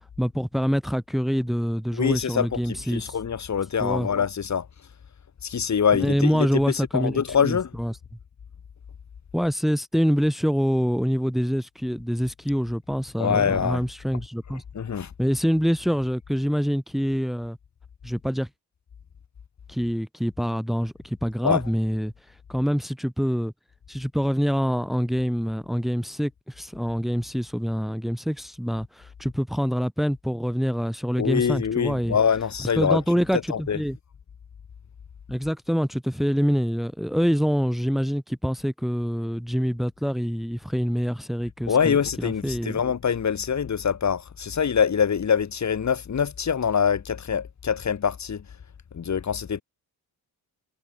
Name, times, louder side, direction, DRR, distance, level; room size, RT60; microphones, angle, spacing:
voice 1, 0.2-3.2 3.8-4.1 5.9-8.0 9.3-14.6 15.2-17.6 18.0-18.5 19.7-22.1 22.5-23.5 23.9-32.2 32.8-34.0 35.3-42.8, equal, ahead, 3.7 m, -25 dB
voice 2, 1.9-4.7 5.4-7.7 13.2-13.8 14.7-15.1 21.4-21.6 31.2-33.0 33.5-33.8 41.7-48.4 48.9-49.6, left 7 dB, 50° left, 5.7 m, -24 dB
wide cardioid pair, 175°, 37 cm